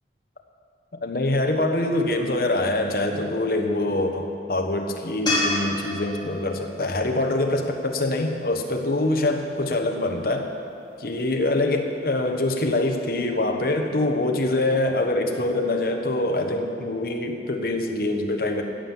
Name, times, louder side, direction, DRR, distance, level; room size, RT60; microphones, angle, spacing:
voice 1, 1.0-10.5 11.0-18.6, left 2 dB, 55° left, 4 dB, 1.2 m, -24 dB
sound 1, 5.3-8.5 11.8-11.9, left 2 dB, 25° left, 2.8 m, -30 dB
15.5 x 7.7 x 7.1 m, 2.7 s
head